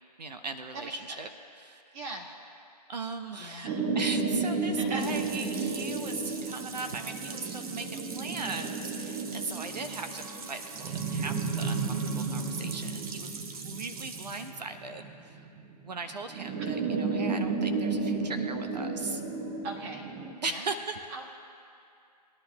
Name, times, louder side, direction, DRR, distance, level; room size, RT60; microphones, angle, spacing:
voice 1, 0.2-1.3 1.6-1.8 2.9-15.5 15.8-19.2 20.4-21.0, right 3 dB, 80° right, 7 dB, 0.9 m, -38 dB
voice 2, 1.9-2.3 3.4-3.9 4.8-5.1 6.8-6.9 19.6-20.0 20.5-20.7 21.1-21.3, right 2 dB, 25° right, -2 dB, 1.6 m, -40 dB
sound 1, 3.6-15.5 16.3-20.3, right 4 dB, 5° right, 0.4 m, -33 dB
sound 2, 5.0-14.5, right 4 dB, 55° right, 1.3 m, -43 dB
20.5 x 11.0 x 2.4 m, 2.5 s
hypercardioid pair, 150°, 21 cm